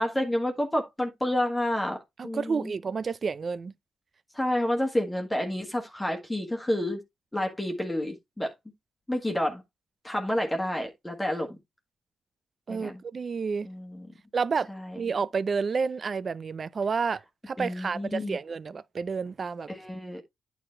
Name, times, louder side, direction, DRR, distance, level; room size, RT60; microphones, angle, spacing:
voice 1, 0.0-2.7 4.3-7.0 7.3-8.5 9.1-9.6 10.0-11.5 12.7-13.0 13.6-14.1 14.7-15.0 17.6-18.4 19.7-20.2, left 1 dB, 10° left, 1.5 m, -29 dB
voice 2, 2.2-3.7 12.7-13.7 14.3-14.7 15.0-17.2 17.5-19.7, right 5 dB, 40° right, 0.5 m, -30 dB
9.4 x 3.9 x 4.4 m
cardioid pair, 110°, 0 cm